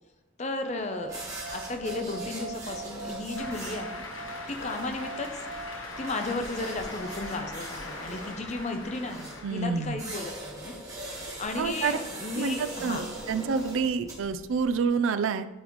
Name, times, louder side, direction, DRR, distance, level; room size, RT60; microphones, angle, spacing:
voice 1, 0.4-4.0 4.5-5.4 6.0-10.7 11.4-13.0, left 2 dB, 35° left, 6 dB, 0.7 m, -34 dB
sound 1, 0.7-7.8, right 3 dB, 50° right, 1.4 m, -42 dB
sound 2, 1.0-14.9, right 1 dB, 15° right, 1.4 m, -42 dB
Cheering / Applause, 3.3-10.2, left 2 dB, 90° left, 1.3 m, -41 dB
voice 2, 9.4-10.0 11.6-12.0 12.3-15.5, right 5 dB, 85° right, 11 dB, 0.4 m, -28 dB
10.0 x 4.0 x 3.1 m, 1.1 s
head